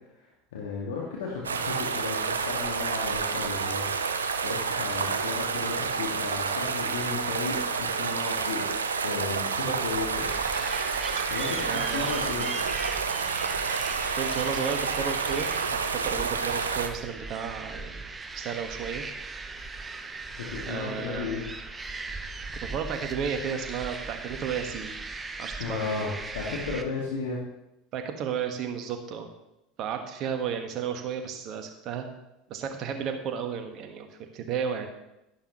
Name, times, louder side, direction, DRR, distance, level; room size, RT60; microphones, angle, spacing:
voice 1, 0.2-10.3 11.3-12.5 20.3-21.4 25.6-27.4, left 4 dB, 70° left, -3 dB, 1.9 m, -34 dB
sound 1, 1.4-16.9, right 5 dB, 80° right, 0.6 m, -29 dB
voice 2, 9.5-9.8 11.6-12.4 14.1-18.0 18.3-19.0 20.7-21.4 22.6-25.0 25.4-26.0 27.9-29.3 29.8-32.1 32.5-34.9, right 7 dB, 45° right, 5 dB, 1.5 m, -33 dB
sound 2, 9.9-26.8, right 3 dB, 20° right, 0.9 m, -38 dB
11.5 x 11.0 x 3.1 m, 0.89 s
figure-of-eight pair, 75°, 0 cm